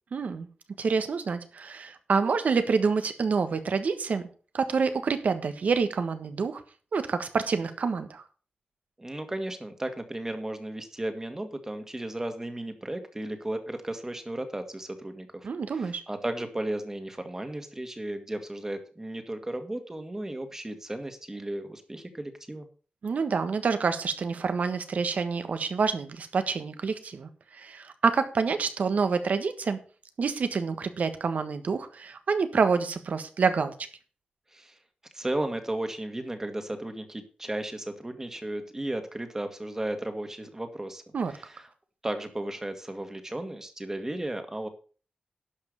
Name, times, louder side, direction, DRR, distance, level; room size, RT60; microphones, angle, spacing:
voice 1, 0.1-0.5 0.8-4.2 4.5-6.6 6.9-8.2 15.4-16.0 23.0-29.8 30.2-33.7 41.1-41.3, right 5 dB, 70° right, 10 dB, 1.4 m, -27 dB
voice 2, 9.0-22.7 34.5-34.8 35.1-41.7 42.0-44.7, right 1 dB, 20° right, 7 dB, 1.8 m, -35 dB
11.5 x 5.6 x 6.6 m, 0.39 s
wide cardioid pair, 105°, 3 cm